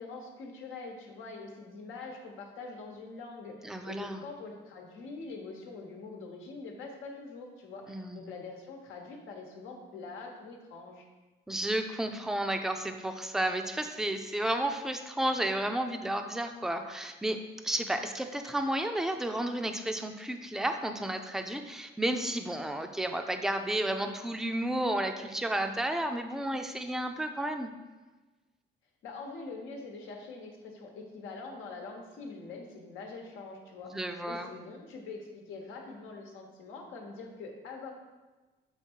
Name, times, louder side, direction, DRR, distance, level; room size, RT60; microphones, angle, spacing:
voice 1, 0.0-11.1 29.0-34.0 34.3-37.9, left 3 dB, 85° left, 1 dB, 1.1 m, -44 dB
voice 2, 3.6-4.2 7.9-8.3 11.5-27.7 33.8-34.5, right 1 dB, ahead, 6 dB, 0.4 m, -32 dB
7.2 x 3.1 x 4.6 m, 1.2 s
cardioid pair, 90°, 20 cm